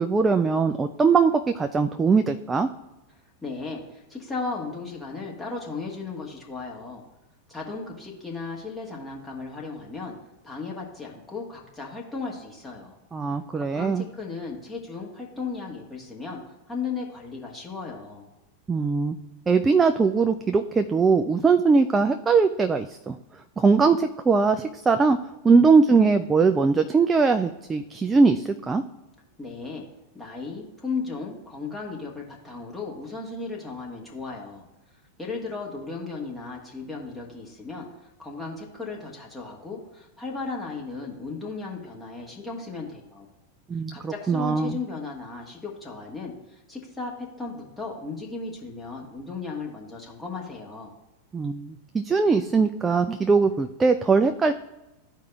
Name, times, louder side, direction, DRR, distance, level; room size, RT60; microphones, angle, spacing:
voice 1, 0.0-2.7 13.1-14.0 18.7-19.1 19.5-23.2 23.6-25.2 25.4-28.8 43.7-44.8 51.3-54.5, right 4 dB, 15° right, 6 dB, 0.3 m, -21 dB
voice 2, 3.4-7.0 7.5-10.2 10.4-13.0 13.6-18.3 29.4-29.9 30.1-34.6 35.2-43.3 43.9-50.9, left 4 dB, 10° left, -3 dB, 1.3 m, -35 dB
13.0 x 4.7 x 2.3 m, 0.98 s
figure-of-eight pair, 90°, 0 cm